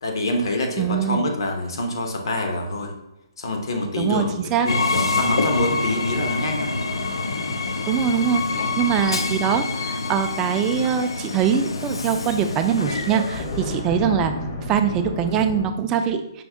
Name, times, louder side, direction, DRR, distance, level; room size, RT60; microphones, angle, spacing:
voice 1, 0.0-2.9 3.4-4.3 4.6-6.7 8.5-8.7, left 1 dB, 65° left, 3 dB, 0.9 m, -26 dB
voice 2, 0.8-1.2 4.0-4.7 7.9-14.3 14.7-16.4, right 8 dB, 20° right, 7 dB, 0.3 m, -23 dB
Train, 4.7-13.9, left 3 dB, 85° left, 0.5 m, -26 dB
sound 1, 11.3-15.7, left 1 dB, 40° left, 0.8 m, -34 dB
5.2 x 2.7 x 3.5 m, 0.88 s
hypercardioid pair, 155°, 3 cm